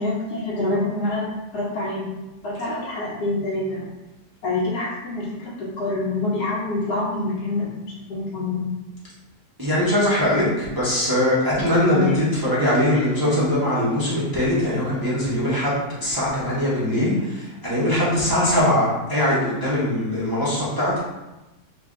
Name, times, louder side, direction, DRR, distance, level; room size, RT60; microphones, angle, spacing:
voice 1, 0.0-2.1 2.4-3.8 4.4-8.6 11.9-12.2 12.9-13.1 16.9-17.2, left 2 dB, 70° left, -7 dB, 1.2 m, -26 dB
voice 2, 9.6-21.0, left 1 dB, 40° right, -9 dB, 0.3 m, -21 dB
3.3 x 2.3 x 3.6 m, 1.0 s
omnidirectional pair, 1.8 m